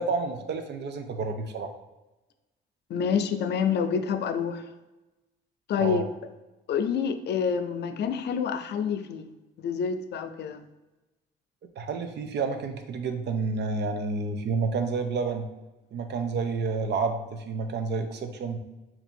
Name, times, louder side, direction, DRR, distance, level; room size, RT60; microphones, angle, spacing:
voice 1, 0.0-1.7 5.8-6.0 11.8-15.5 15.9-18.6, right 4 dB, 60° right, 7 dB, 0.5 m, -29 dB
voice 2, 2.9-4.6 5.7-6.0 6.7-9.3 9.6-10.7, left 7 dB, 60° left, 8 dB, 0.4 m, -27 dB
2.8 x 2.6 x 4.3 m, 1.1 s
cardioid pair, 90°, 20 cm